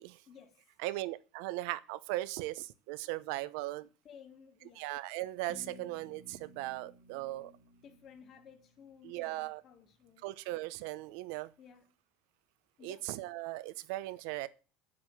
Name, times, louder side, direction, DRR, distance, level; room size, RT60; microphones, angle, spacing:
voice 1, 0.3-0.6 4.0-4.9 7.8-10.3 11.6-11.9 12.8-13.1, left 7 dB, 35° left, 2.0 m, -56 dB
voice 2, 0.8-3.9 4.8-7.5 9.0-9.6 10.2-11.5 12.8-14.5, right 17 dB, 70° right, 0.9 m, -38 dB
sound 1, 5.5-9.4, left 2 dB, 60° left, 3.0 m, -56 dB
9.8 x 7.8 x 7.2 m
cardioid pair, 160°, 0 cm